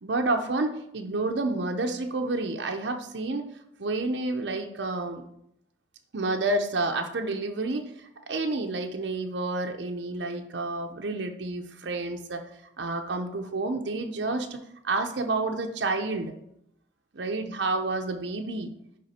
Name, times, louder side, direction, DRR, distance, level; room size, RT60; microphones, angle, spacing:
voice 1, 0.0-3.5 3.8-5.2 6.1-7.9 8.3-12.4 12.8-16.3 17.2-18.7, right 2 dB, 75° right, 4 dB, 0.7 m, -29 dB
10.0 x 3.7 x 4.2 m, 0.75 s
head